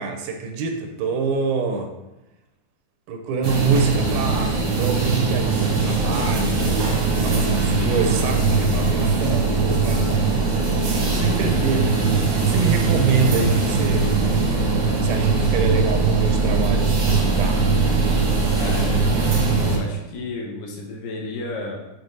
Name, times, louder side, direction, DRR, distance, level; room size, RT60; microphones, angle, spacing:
voice 1, 0.0-1.9 3.1-10.1 11.0-12.0 12.3-14.1 15.0-17.6, right 4 dB, 80° right, 4 dB, 2.6 m, -26 dB
sound 1, 3.4-19.8, right 4 dB, 55° right, 1.6 m, -20 dB
voice 2, 18.6-19.1 19.5-21.8, left 2 dB, 70° left, -1 dB, 2.5 m, -32 dB
7.8 x 4.3 x 3.9 m, 0.96 s
omnidirectional pair, 4.3 m